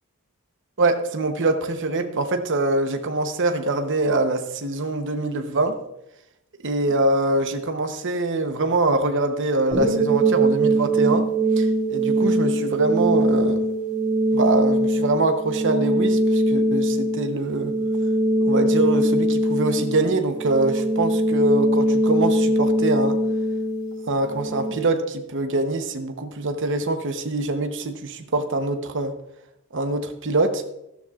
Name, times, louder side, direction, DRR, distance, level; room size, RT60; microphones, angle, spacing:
voice 1, 0.8-5.8 6.6-11.3 11.6-13.6 14.3-17.8 18.4-23.2 24.1-29.2 29.7-30.6, right 2 dB, 55° right, 0.9 m, -24 dB
sound 1, 9.7-24.7, right 1 dB, 5° right, 5.0 m, -21 dB
14.0 x 12.5 x 2.4 m
head